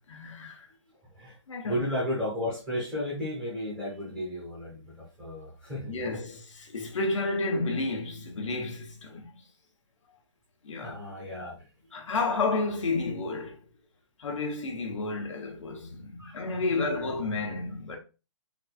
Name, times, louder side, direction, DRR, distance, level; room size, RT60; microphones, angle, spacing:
voice 1, 0.1-0.7 1.5-1.8 5.9-9.4 10.6-11.0 11.9-13.6 14.2-18.0, left 3 dB, 80° left, 1.1 m, -31 dB
voice 2, 1.0-1.4 1.6-6.2 9.1-9.2 10.8-11.7 16.2-16.4 16.8-17.0, left 1 dB, 10° right, 0.9 m, -34 dB
4.0 x 2.6 x 2.4 m
hypercardioid pair, 175°, 16 cm